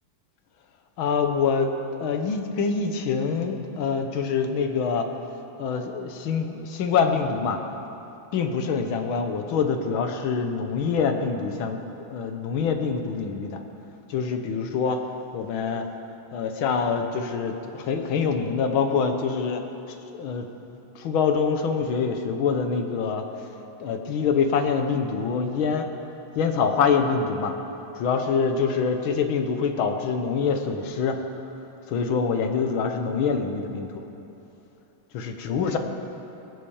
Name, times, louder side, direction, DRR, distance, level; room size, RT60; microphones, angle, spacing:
voice 1, 1.0-5.1 5.6-7.6 8.3-13.6 14.1-15.0 15.3-15.9 16.3-19.6 20.1-20.5 21.0-23.2 23.8-25.9 26.4-27.6 28.0-31.2 31.9-34.0 35.1-35.8, left 5 dB, 75° left, 6 dB, 1.8 m, -25 dB
18.5 x 8.2 x 7.1 m, 3.0 s
omnidirectional pair, 2.3 m